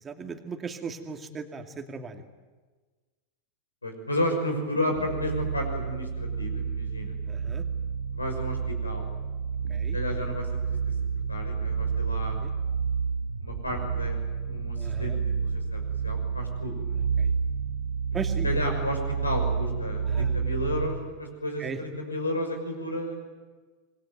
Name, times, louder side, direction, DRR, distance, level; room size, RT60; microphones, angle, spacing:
voice 1, 0.0-2.2 7.3-7.6 9.7-10.0 12.4-12.5 14.8-15.2 17.0-17.3 18.1-18.5 20.1-20.3 21.6-21.8, right 5 dB, 20° right, 5 dB, 2.5 m, -37 dB
voice 2, 3.8-7.1 8.1-9.1 9.9-10.5 11.3-12.4 13.4-14.2 14.5-17.0 18.4-23.3, left 1 dB, 80° left, 4 dB, 5.8 m, -32 dB
sound 1, 4.9-21.1, right 6 dB, 65° right, 1.6 m, -30 dB
26.5 x 22.0 x 9.3 m, 1.4 s
figure-of-eight pair, 90°, 0 cm